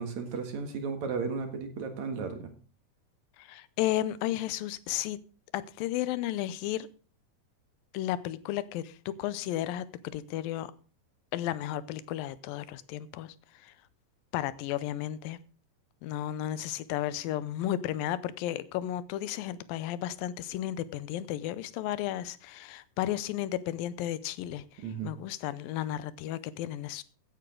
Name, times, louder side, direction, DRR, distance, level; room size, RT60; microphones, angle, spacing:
voice 1, 0.0-2.5 24.8-25.1, right 5 dB, 60° right, 2.8 m, -34 dB
voice 2, 3.4-5.2 5.5-6.9 7.9-9.9 10.1-10.7 11.3-13.3 13.6-13.7 14.3-15.4 16.0-24.6 25.0-27.0, left 13 dB, 85° left, 2.5 m, -33 dB
15.5 x 10.0 x 3.8 m
omnidirectional pair, 4.0 m